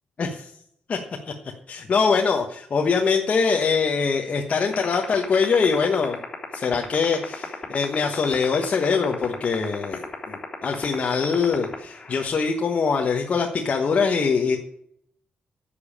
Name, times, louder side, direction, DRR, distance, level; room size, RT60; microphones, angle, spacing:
voice 1, 0.2-0.5 0.9-1.0 1.2-1.3 1.7-6.2 6.5-14.6, left 5 dB, 45° left, 1 dB, 1.2 m, -23 dB
sound 1, 4.7-12.3, left 4 dB, 30° left, 3.5 m, -31 dB
10.5 x 7.1 x 8.7 m, 0.70 s
cardioid pair, 120°, 3 cm